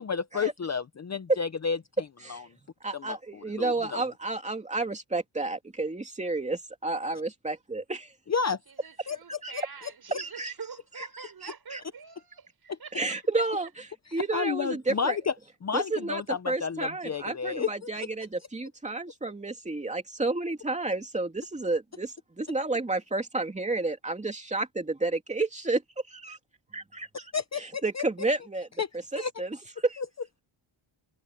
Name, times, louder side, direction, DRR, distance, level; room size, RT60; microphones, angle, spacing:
voice 1, 0.0-1.8 2.3-2.4 2.9-3.2 3.6-4.0 8.3-8.6 9.1-9.2 9.5-9.6 12.7-12.8 14.3-15.3 15.6-17.9 27.3-28.0 28.8-28.9 29.1-29.3 30.0-30.1, left 6 dB, 35° left, 0.7 m, -30 dB
voice 2, 2.8-8.1 9.4-9.5 10.2-10.5 11.0-11.8 12.9-13.8 14.1-15.2 15.7-25.8 26.1-26.4 26.7-27.3 27.6-28.7 29.1-29.6 29.8-30.0, right 2 dB, 15° right, 2.8 m, -31 dB
voice 3, 8.7-13.0, right 6 dB, 45° right, 4.4 m, -45 dB
wide cardioid pair, 165°, 49 cm